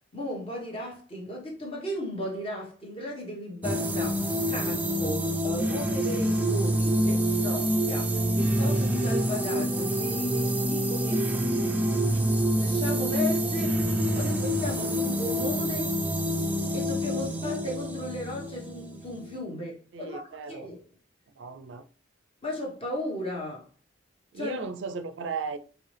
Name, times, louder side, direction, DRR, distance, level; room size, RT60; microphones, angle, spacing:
voice 1, 0.1-11.3 11.9-13.8 14.2-15.9 16.7-20.8 22.4-23.6 24.3-24.6, left 1 dB, 30° left, 1.3 m, -36 dB
sound 1, 3.6-19.4, right 1 dB, 10° right, 0.4 m, -27 dB
voice 2, 19.9-20.7 21.4-21.8 24.3-25.6, right 4 dB, 80° right, 0.4 m, -36 dB
4.7 x 3.2 x 3.3 m
head